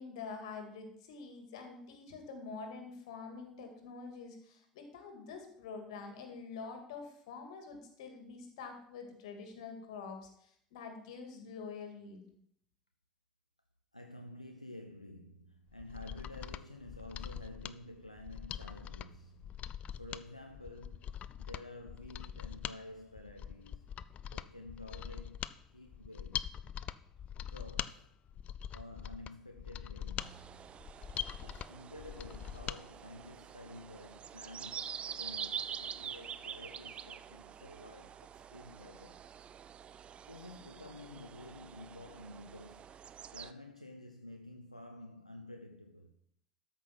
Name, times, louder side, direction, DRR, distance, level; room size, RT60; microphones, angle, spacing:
voice 1, 0.0-12.3, left 4 dB, 65° left, 2.3 m, -46 dB
voice 2, 13.9-21.1 21.4-23.9 24.3-26.6 27.4-28.1 28.7-30.8 31.4-39.2 40.3-42.9 43.3-46.1, left 1 dB, 90° left, 0.6 m, -51 dB
Mechanisms, 15.7-32.8 33.1-33.2, left 9 dB, 40° left, 0.4 m, -43 dB
sound 1, 30.2-43.5, right 8 dB, 30° right, 0.5 m, -46 dB
13.0 x 5.8 x 5.8 m
figure-of-eight pair, 65°, 3 cm